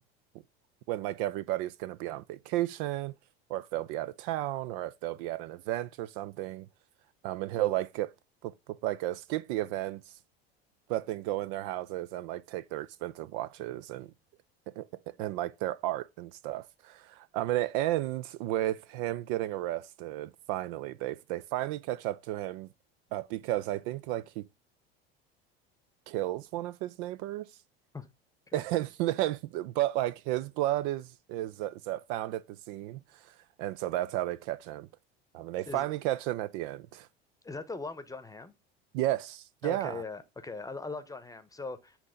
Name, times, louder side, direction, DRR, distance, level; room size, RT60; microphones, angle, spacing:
voice 1, 0.9-3.1 3.5-6.7 7.2-8.1 8.4-8.5 8.8-10.1 10.9-14.1 14.8-14.9 15.2-22.7 23.1-24.4 26.1-27.5 28.5-34.9 35.3-37.1 38.9-40.0, right 15 dB, 55° right, 0.5 m, -33 dB
voice 2, 37.4-38.5 39.6-42.0, left 3 dB, 10° left, 0.9 m, -40 dB
7.9 x 2.9 x 5.0 m
hypercardioid pair, 75°, 31 cm